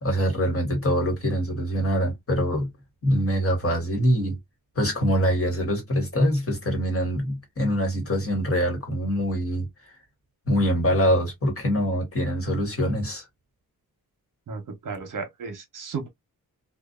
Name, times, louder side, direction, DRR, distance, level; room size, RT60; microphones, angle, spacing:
voice 1, 0.0-2.7 3.0-4.4 4.7-9.9 10.5-13.3, equal, 35° left, 1.3 m, -24 dB
voice 2, 14.5-16.1, right 5 dB, 55° right, 0.9 m, -34 dB
2.6 x 2.3 x 2.3 m
wide cardioid pair, 110°, 37 cm